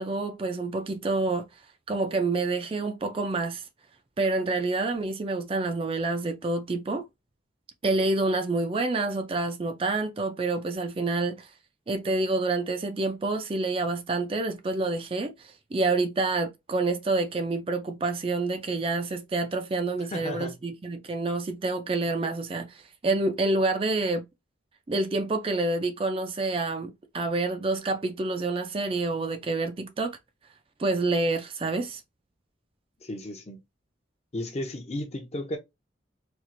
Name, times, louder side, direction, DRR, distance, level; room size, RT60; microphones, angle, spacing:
voice 1, 0.0-1.5 1.9-3.6 4.2-7.0 7.8-11.5 11.9-24.2 24.9-30.2 30.8-32.0, right 3 dB, 30° right, 0.4 m, -28 dB
voice 2, 20.1-20.6 33.0-33.6 34.3-35.6, left 1 dB, 35° left, 0.6 m, -34 dB
4.3 x 2.4 x 2.5 m
head